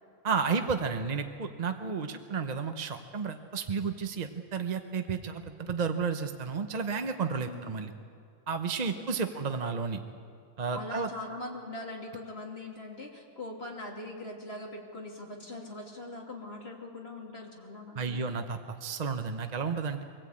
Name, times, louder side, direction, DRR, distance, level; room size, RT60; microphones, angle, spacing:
voice 1, 0.2-7.9 8.5-10.0 10.6-11.1 17.9-20.0, right 5 dB, 35° right, 7 dB, 0.7 m, -32 dB
voice 2, 7.4-7.8 8.9-9.4 10.7-18.2, left 2 dB, 40° left, -1 dB, 3.0 m, -42 dB
24.0 x 16.5 x 8.6 m, 2.3 s
omnidirectional pair, 1.7 m